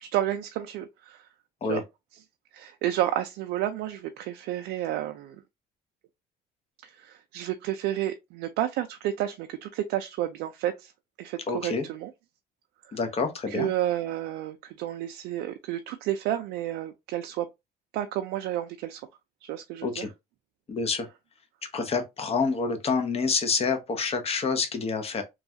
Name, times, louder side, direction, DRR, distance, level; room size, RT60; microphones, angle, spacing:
voice 1, 0.0-1.3 1.7-1.8 2.5-5.4 6.8-10.9 11.2-12.1 12.8-13.0 13.5-17.5 17.9-19.0 19.4-20.1, right 12 dB, 85° right, 0.4 m, -31 dB
voice 2, 11.5-11.9 12.9-13.7 19.8-20.1 20.7-21.1 21.7-25.2, left 4 dB, 35° left, 0.8 m, -27 dB
3.0 x 2.4 x 2.7 m
cardioid pair, 110°, 17 cm